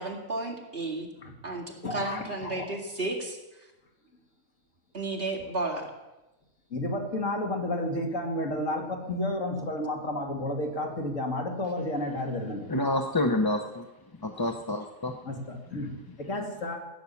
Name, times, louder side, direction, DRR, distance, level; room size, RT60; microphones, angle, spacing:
voice 1, 0.0-1.1 1.4-1.6 1.9-3.4 4.9-5.9, right 2 dB, 45° right, 0 dB, 2.4 m, -32 dB
voice 2, 1.8-2.7 6.7-12.7 15.2-16.8, left 1 dB, 70° left, 1 dB, 2.9 m, -31 dB
voice 3, 12.7-13.8 14.2-15.2, left 2 dB, 25° left, 5 dB, 0.6 m, -28 dB
16.5 x 9.4 x 7.1 m, 1.0 s
omnidirectional pair, 1.4 m